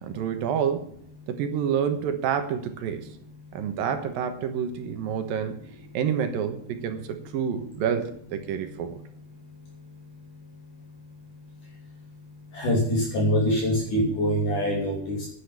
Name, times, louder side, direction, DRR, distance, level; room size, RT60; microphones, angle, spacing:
voice 1, 0.0-0.9 1.3-3.1 3.5-5.6 5.9-9.0, right 8 dB, 70° right, 8 dB, 2.6 m, -28 dB
voice 2, 12.5-15.3, equal, 50° left, -2 dB, 4.3 m, -24 dB
10.0 x 9.9 x 7.3 m, 0.65 s
omnidirectional pair, 4.8 m